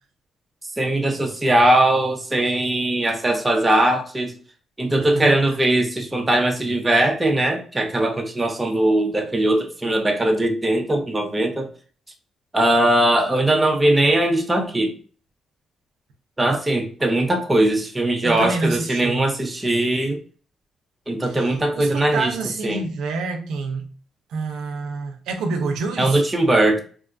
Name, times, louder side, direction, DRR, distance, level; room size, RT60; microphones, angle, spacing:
voice 1, 0.8-4.3 4.8-11.7 12.5-14.9 16.4-20.2 21.1-22.3 22.6-22.9 26.0-26.8, right 1 dB, 15° right, 0.6 m, -20 dB
voice 2, 18.2-19.2 21.3-23.9 24.3-26.2, right 3 dB, 85° right, 0.5 m, -27 dB
2.8 x 2.3 x 2.4 m
cardioid pair, 90°, 0 cm